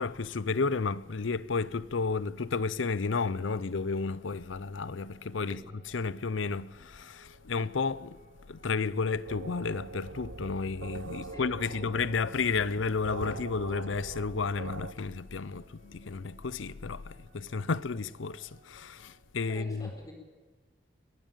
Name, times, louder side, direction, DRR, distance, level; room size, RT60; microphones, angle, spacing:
voice 1, 0.0-19.9, left 4 dB, 85° left, 0.7 m, -32 dB
sound 1, 4.0-19.2, right 1 dB, 50° right, 2.3 m, -63 dB
sound 2, 9.2-14.9, right 3 dB, 85° right, 0.9 m, -43 dB
voice 2, 11.2-11.8 19.5-20.1, left 1 dB, 20° left, 4.3 m, -48 dB
23.0 x 12.5 x 9.0 m
head